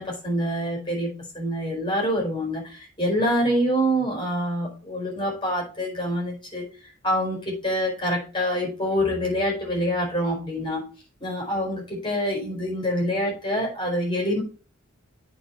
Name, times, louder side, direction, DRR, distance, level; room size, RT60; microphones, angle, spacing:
voice 1, 0.0-6.7 7.0-10.8 11.2-14.4, equal, 20° left, -1 dB, 4.6 m, -26 dB
8.7 x 4.5 x 5.6 m, 0.37 s
head